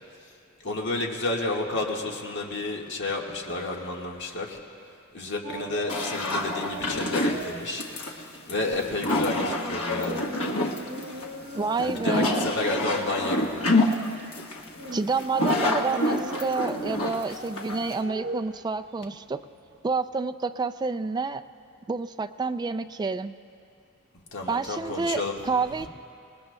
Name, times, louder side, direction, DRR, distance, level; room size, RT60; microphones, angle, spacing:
voice 1, 0.6-4.6 5.1-7.9 8.5-10.3 11.8-13.6 24.3-25.4 25.8-25.9, left 2 dB, 60° left, -1 dB, 1.6 m, -31 dB
sound 1, 5.4-7.9 8.2-8.4 8.8-19.8 20.1-20.2, right 2 dB, 60° right, 1.0 m, -39 dB
sound 2, 5.9-18.0, left 1 dB, 85° left, 1.2 m, -27 dB
voice 2, 11.6-12.4 14.9-19.4 19.8-21.4 21.9-23.4 24.5-25.2 25.5-25.9, right 4 dB, 20° right, 9 dB, 0.3 m, -29 dB
26.0 x 19.5 x 2.2 m, 2.5 s
head